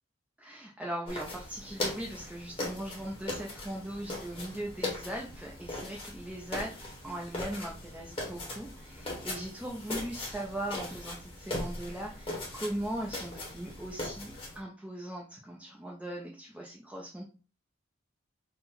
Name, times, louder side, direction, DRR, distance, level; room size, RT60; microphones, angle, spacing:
voice 1, 0.4-17.2, right 1 dB, 5° right, -2 dB, 0.5 m, -39 dB
sound 1, 1.1-14.6, left 1 dB, 25° left, 1.1 m, -39 dB
3.8 x 2.1 x 4.2 m, 0.37 s
head